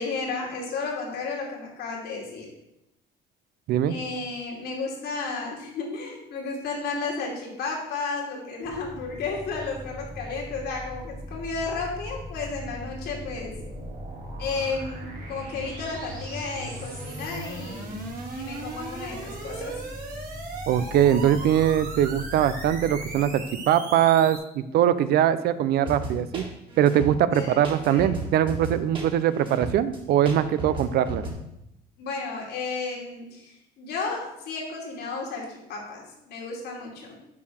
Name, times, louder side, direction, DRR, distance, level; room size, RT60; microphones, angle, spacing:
voice 1, 0.0-2.5 3.9-13.6 14.4-18.0 18.3-19.8 27.3-28.2 32.0-37.2, left 4 dB, 75° left, -1 dB, 2.7 m, -33 dB
sound 1, 8.6-23.8, equal, 5° right, 1.2 m, -41 dB
sound 2, 11.6-24.4, right 2 dB, 55° right, 2.4 m, -39 dB
voice 2, 20.7-26.4 26.8-31.2, right 10 dB, 70° right, 14 dB, 0.5 m, -22 dB
sound 3, 25.8-31.3, right 2 dB, 30° right, 2.0 m, -34 dB
7.1 x 4.7 x 6.3 m, 0.85 s
cardioid pair, 110°, 17 cm